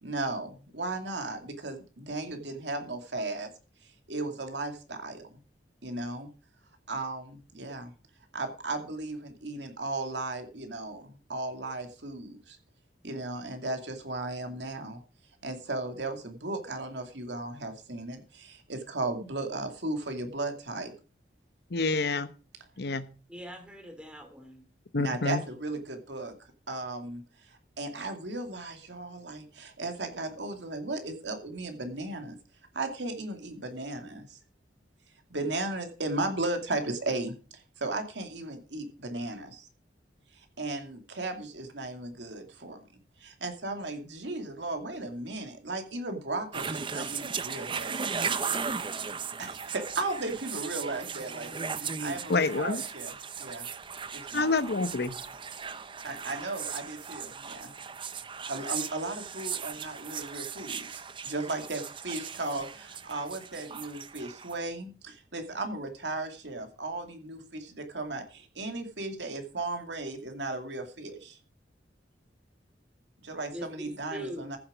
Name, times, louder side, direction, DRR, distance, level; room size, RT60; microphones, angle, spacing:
voice 1, 0.0-3.5 3.8-5.2 5.8-6.3 6.9-7.9 8.3-12.6 13.0-15.0 15.4-20.9 25.0-26.3 26.7-32.4 32.7-34.4 35.3-39.7 40.3-42.8 43.2-48.2 49.4-53.1 53.4-53.7 54.1-54.5 56.0-57.7 58.5-71.4 73.2-74.6, right 2 dB, 75° right, 6 dB, 2.4 m, -36 dB
voice 2, 21.7-22.3 22.8-23.1 24.9-25.4 52.3-52.8 54.3-55.2, left 3 dB, 60° left, 13 dB, 1.0 m, -27 dB
voice 3, 23.3-24.6 73.5-74.6, equal, 5° right, 5 dB, 2.6 m, -42 dB
sound 1, 46.5-64.6, right 6 dB, 30° right, 0.7 m, -37 dB
14.5 x 7.6 x 5.0 m, 0.36 s
head